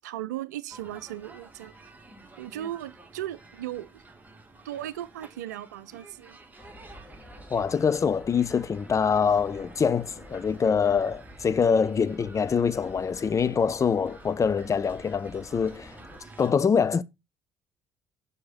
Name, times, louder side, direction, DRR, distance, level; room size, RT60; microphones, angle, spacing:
voice 1, 0.0-1.8 2.4-4.0 4.6-6.4, right 12 dB, 85° right, 0.5 m, -37 dB
sound 1, 0.7-16.5, right 3 dB, 20° right, 2.2 m, -51 dB
sound 2, 6.6-16.2, equal, 15° left, 2.2 m, -49 dB
voice 2, 7.5-15.9 16.4-17.0, left 6 dB, 35° left, 0.6 m, -24 dB
6.6 x 5.5 x 4.1 m
hypercardioid pair, 55°, 9 cm